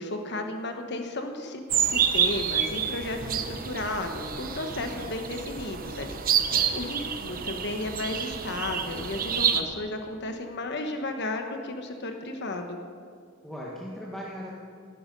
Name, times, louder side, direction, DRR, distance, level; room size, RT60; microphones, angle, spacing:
voice 1, 0.0-12.8, left 2 dB, 55° left, 5 dB, 1.2 m, -34 dB
sound 1, 1.7-9.6, right 8 dB, 45° right, 0.9 m, -28 dB
voice 2, 6.5-6.9 13.4-14.5, equal, ahead, -5 dB, 1.5 m, -39 dB
18.5 x 10.5 x 5.4 m, 2.2 s
head